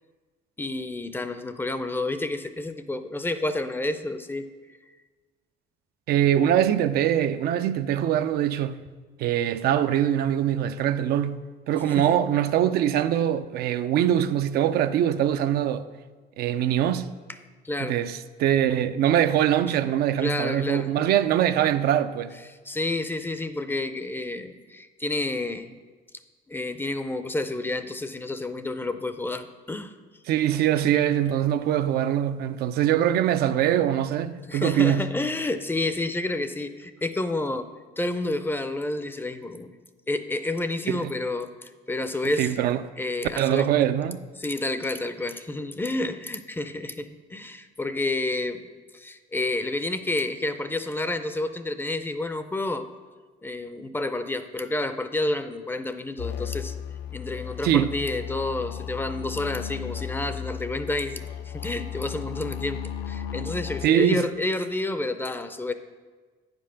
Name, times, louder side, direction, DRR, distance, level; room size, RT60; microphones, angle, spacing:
voice 1, 0.6-4.5 11.8-12.2 17.6-18.0 20.2-20.9 22.7-25.7 26.5-29.9 34.5-37.7 38.0-39.7 40.1-42.5 43.0-43.7 44.4-48.7 48.9-52.9 53.4-56.7 57.1-65.7, left 2 dB, 10° left, 0.5 m, -30 dB
voice 2, 6.1-8.8 9.2-15.8 16.4-17.1 17.8-22.3 30.3-35.2 40.9-41.1 42.4-42.8 43.4-44.2 57.6-57.9 63.8-64.3, right 10 dB, 70° right, 0.4 m, -23 dB
sound 1, 56.2-63.9, left 8 dB, 75° left, 0.5 m, -35 dB
8.8 x 5.3 x 5.7 m
cardioid pair, 110°, 17 cm